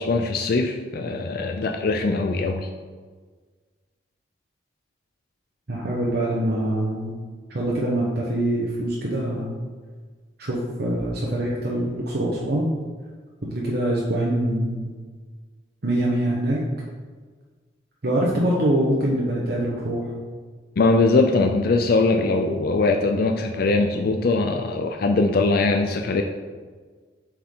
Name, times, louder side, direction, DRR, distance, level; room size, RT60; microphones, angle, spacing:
voice 1, 0.0-2.7 20.8-26.2, left 3 dB, 60° left, 4 dB, 0.4 m, -21 dB
voice 2, 5.7-7.1 7.5-9.6 10.4-12.7 13.4-14.9 15.8-16.6 18.0-20.1, right 1 dB, 60° right, -4 dB, 1.0 m, -24 dB
7.4 x 4.7 x 3.7 m, 1.5 s
head